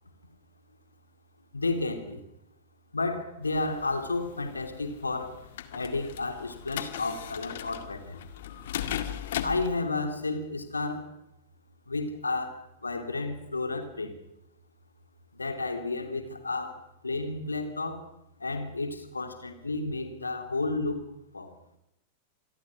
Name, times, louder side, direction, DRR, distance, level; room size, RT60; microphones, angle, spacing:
voice 1, 1.5-2.2 2.9-5.4 5.7-8.2 9.4-11.1 11.9-14.1 15.4-18.1 18.4-21.0 21.3-21.5, left 3 dB, 80° left, 3.0 m, -32 dB
sound 1, 3.4-9.7, left 10 dB, 60° left, 1.9 m, -38 dB
27.5 x 21.0 x 6.2 m
figure-of-eight pair, 90°, 0 cm